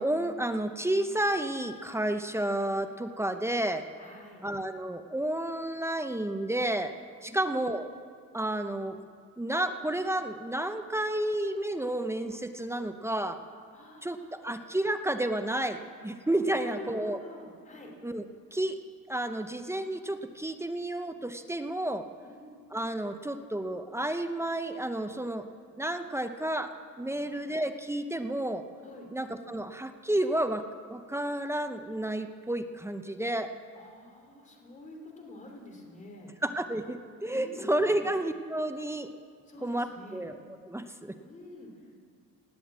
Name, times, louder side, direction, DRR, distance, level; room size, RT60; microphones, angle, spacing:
voice 1, 0.0-3.8 4.4-6.9 7.2-7.9 8.3-9.0 9.4-13.4 14.0-17.2 18.0-18.2 18.5-18.8 19.1-22.0 22.7-25.5 25.8-28.7 29.1-33.5 36.4-39.1 39.6-40.4 40.6-41.1, right 1 dB, 10° right, 8 dB, 0.6 m, -31 dB
voice 2, 4.0-4.4 7.2-7.8 13.7-14.4 16.4-17.9 22.2-22.6 27.1-27.7 28.8-29.1 33.7-36.3 37.3-38.1 39.5-40.3 41.2-42.0, left 2 dB, 25° left, 1 dB, 3.1 m, -47 dB
18.5 x 7.8 x 8.4 m, 2.1 s
cardioid pair, 130°, 32 cm